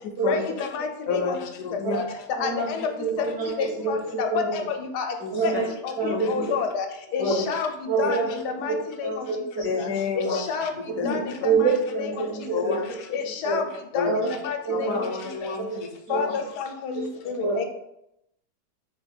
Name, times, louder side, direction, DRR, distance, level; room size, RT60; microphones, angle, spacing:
voice 1, 0.2-1.4 1.9-2.0 2.4-2.9 3.6-5.1 5.4-5.5 5.8-5.9 6.3-6.9 7.1-7.7 8.0-9.2 9.8-9.9 10.1-10.7 11.0-11.7 12.0-12.1 13.1-13.6 13.9-14.1 14.4-15.0 15.4-15.5 16.1-17.6, left 6 dB, 85° left, 5 dB, 1.2 m, -29 dB
voice 2, 1.1-2.0 5.2-5.4 6.1-6.2 7.2-7.3 8.0-8.1 9.6-10.4 11.0-11.1 12.5-12.8 13.9-14.1 14.7-16.3, left 5 dB, 65° left, 2 dB, 0.9 m, -29 dB
voice 3, 2.4-3.9 4.3-4.5 5.3-5.6 6.0-6.4 7.2-7.4 7.9-8.3 8.7-9.9 10.2-10.3 11.0-12.7 13.4-13.6 14.1-14.3 14.6-15.0 16.1-16.4 16.9-17.0 17.4-17.6, right 4 dB, 80° right, -5 dB, 2.3 m, -26 dB
4.5 x 2.3 x 4.2 m, 0.82 s
omnidirectional pair, 1.7 m